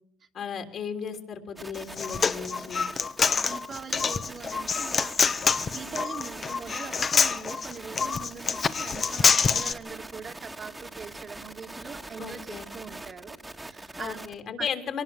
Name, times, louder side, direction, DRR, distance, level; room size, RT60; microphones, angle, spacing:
voice 1, 0.3-2.8 12.2-12.7 14.0-15.0, left 7 dB, 60° left, 6 dB, 3.3 m, -35 dB
sound 1, 1.6-14.4, right 2 dB, 15° right, 1.7 m, -43 dB
Human voice, 1.7-9.7, left 5 dB, 40° left, 1.1 m, -26 dB
voice 2, 2.4-2.7 3.3-5.4 5.7-14.2 14.6-14.7, right 5 dB, 45° right, 4 dB, 2.2 m, -42 dB
23.0 x 19.0 x 7.3 m, 0.63 s
supercardioid pair, 80°, 0 cm